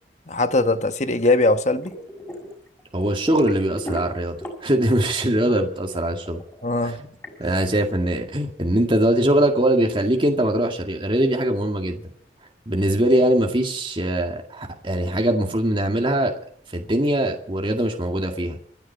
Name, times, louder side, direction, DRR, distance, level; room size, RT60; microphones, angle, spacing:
voice 1, 0.3-1.9 6.6-7.0, left 2 dB, 40° left, 1.2 m, -20 dB
sound 1, 1.8-2.5 2.8-4.8 5.1-7.3, right 1 dB, 15° left, 6.2 m, -34 dB
voice 2, 2.9-6.4 6.8-7.0 7.4-12.0 12.7-16.3 16.7-18.6, right 1 dB, 30° right, 2.0 m, -22 dB
26.0 x 10.5 x 4.6 m
head